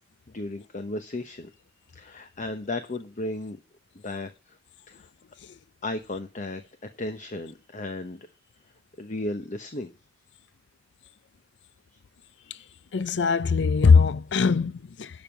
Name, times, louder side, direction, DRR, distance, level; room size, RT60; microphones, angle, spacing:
voice 1, 0.3-1.5 1.9-3.6 4.0-4.6 4.9-5.1 5.8-6.6 7.0-8.3 9.0-9.9, left 2 dB, 45° left, 0.9 m, -34 dB
voice 2, 12.9-15.1, left 5 dB, 70° left, 0.5 m, -20 dB
11.5 x 5.4 x 7.3 m
head